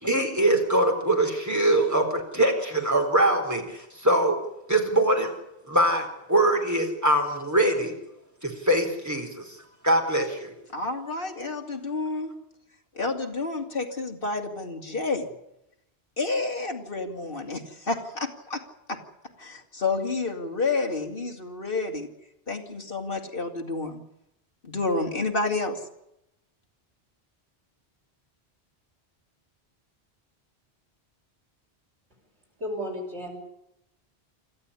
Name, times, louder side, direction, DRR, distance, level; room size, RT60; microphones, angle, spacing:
voice 1, 0.0-4.4 4.7-5.3 5.7-7.9 8.4-9.6 9.8-10.5, right 1 dB, 15° right, 3 dB, 4.1 m, -23 dB
voice 2, 10.7-12.3 12.9-15.3 16.2-18.6 18.9-19.0 19.4-22.1 22.5-24.0 24.6-25.8, left 3 dB, 55° left, 2 dB, 2.9 m, -29 dB
voice 3, 32.6-33.4, equal, 85° right, 2 dB, 6.5 m, -33 dB
26.5 x 14.0 x 9.9 m, 0.84 s
omnidirectional pair, 1.1 m